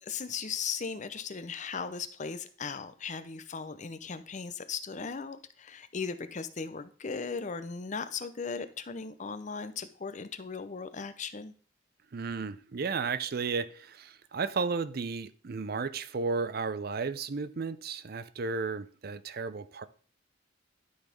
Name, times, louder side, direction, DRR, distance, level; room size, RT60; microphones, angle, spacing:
voice 1, 0.0-11.5, left 5 dB, 40° left, 0.6 m, -37 dB
voice 2, 12.1-19.9, right 4 dB, 50° right, 0.5 m, -33 dB
11.5 x 4.1 x 5.2 m
head